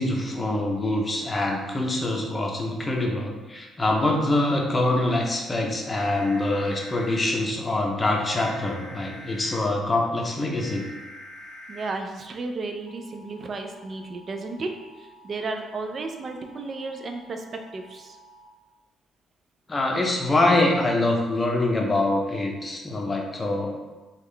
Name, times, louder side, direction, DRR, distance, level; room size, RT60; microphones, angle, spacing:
voice 1, 0.0-10.9 19.7-23.8, left 2 dB, 25° left, 0 dB, 0.6 m, -24 dB
sound 1, 6.0-7.3 8.3-9.6 10.6-11.9 12.9-18.5, equal, 75° left, 0.6 m, -46 dB
voice 2, 11.7-14.7 15.0-18.2, right 3 dB, 45° right, 4 dB, 0.4 m, -33 dB
3.5 x 2.3 x 3.2 m, 1.2 s
cardioid pair, 90°, 0 cm